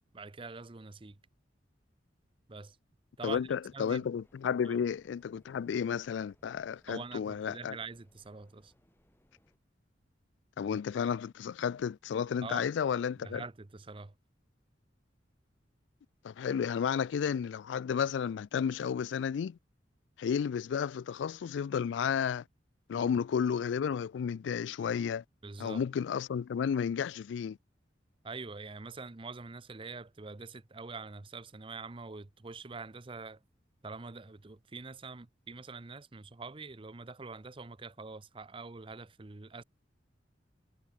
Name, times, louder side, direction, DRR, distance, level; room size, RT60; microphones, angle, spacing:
voice 1, 0.1-1.2 2.5-2.8 3.2-3.5 3.7-4.1 4.6-4.8 6.9-8.7 12.4-12.7 13.2-14.1 22.9-23.1 25.4-25.8 28.2-33.4 33.8-39.6, right 4 dB, 30° right, 0.7 m, -45 dB
voice 2, 3.2-7.8 10.6-13.4 16.2-19.6 20.2-22.4 22.9-25.2 25.6-27.6, left 7 dB, 70° left, 0.3 m, -32 dB
sound 1, 4.2-9.6, equal, 10° left, 4.9 m, -69 dB
head